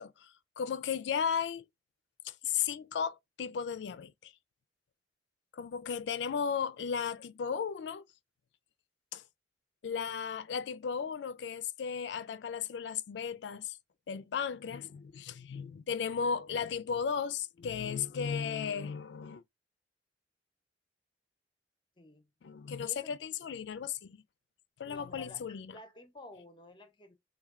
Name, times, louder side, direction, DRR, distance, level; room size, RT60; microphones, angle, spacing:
voice 1, 0.0-1.6 2.2-4.3 5.5-8.0 9.1-9.2 9.8-13.8 14.1-19.4 22.4-24.2 24.8-25.8, left 7 dB, 70° left, 0.4 m, -35 dB
voice 2, 22.0-22.3 22.8-23.1 24.8-27.1, left 2 dB, 25° left, 0.7 m, -52 dB
3.3 x 2.2 x 3.5 m
head